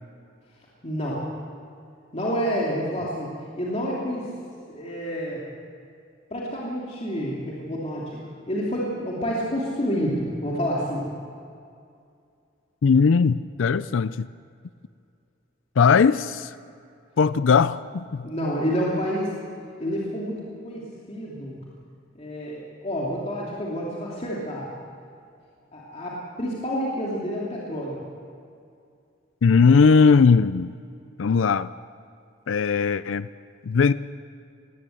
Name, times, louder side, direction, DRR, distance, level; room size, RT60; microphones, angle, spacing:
voice 1, 0.8-1.2 2.1-4.3 4.7-5.4 6.3-8.2 8.5-11.1 18.2-19.3 19.8-20.8 21.1-21.6 22.2-24.7 25.7-28.0, equal, 35° left, -5 dB, 2.9 m, -28 dB
voice 2, 12.8-14.3 15.8-16.5 17.2-18.3 29.4-30.7 31.2-31.7 32.5-33.3 33.6-33.9, left 5 dB, 85° left, 15 dB, 0.5 m, -19 dB
19.5 x 17.0 x 7.9 m, 2.4 s
head